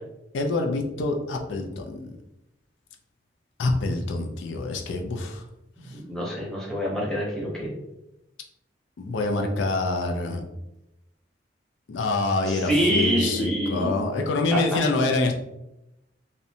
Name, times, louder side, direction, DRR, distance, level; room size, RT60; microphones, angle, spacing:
voice 1, 0.3-2.1 3.6-5.4 9.0-10.4 11.9-15.3, left 3 dB, 90° left, 3 dB, 0.4 m, -26 dB
voice 2, 5.8-7.8 12.5-14.0, equal, 5° left, -5 dB, 0.7 m, -26 dB
2.6 x 2.1 x 2.7 m, 0.89 s
head